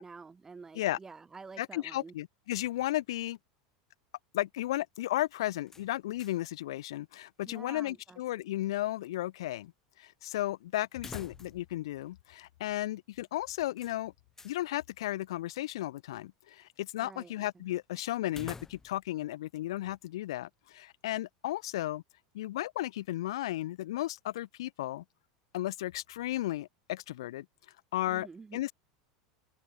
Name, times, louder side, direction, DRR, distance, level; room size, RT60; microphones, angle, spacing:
voice 1, 0.0-2.1 7.4-8.4 17.0-17.6 28.1-28.6, right 4 dB, 20° right, 1.8 m, -49 dB
voice 2, 1.6-3.4 4.3-9.7 10.0-14.1 14.4-22.0 22.3-25.0 25.5-27.5 27.9-28.3 28.5-28.7, left 15 dB, 75° left, 0.5 m, -34 dB
sound 1, 5.6-6.5 6.8-6.9 10.9-11.8 12.1-12.2 13.8-14.6 18.3-19.1, left 3 dB, 15° left, 1.4 m, -48 dB
hypercardioid pair, 90°, 3 cm